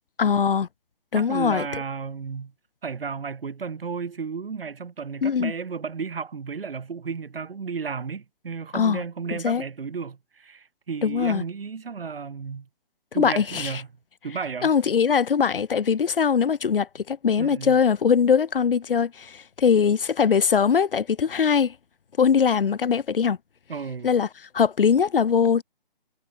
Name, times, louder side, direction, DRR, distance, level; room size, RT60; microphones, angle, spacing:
voice 1, 0.2-0.7 1.1-1.7 5.2-5.5 8.7-9.0 9.4-9.6 11.0-11.4 13.2-13.7 14.6-21.7 22.2-23.4 24.0-24.3 24.5-25.6, left 6 dB, 70° left, 0.9 m, -21 dB
voice 2, 1.1-2.5 2.8-12.7 13.1-13.9 14.2-14.7 17.4-17.8 23.7-24.1, right 5 dB, 75° right, 1.9 m, -33 dB
hypercardioid pair, 180°, 29 cm